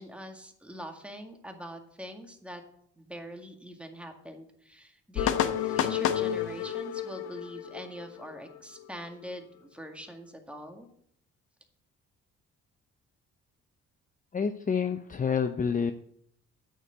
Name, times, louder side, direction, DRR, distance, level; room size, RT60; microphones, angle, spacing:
voice 1, 0.0-2.6 3.0-10.9, equal, 5° right, 4 dB, 2.0 m, -43 dB
sound 1, 5.1-8.8, left 10 dB, 85° left, 1.0 m, -30 dB
voice 2, 14.3-15.9, left 6 dB, 25° left, 8 dB, 0.7 m, -28 dB
9.3 x 6.5 x 8.0 m, 0.68 s
cardioid pair, 90°, 30 cm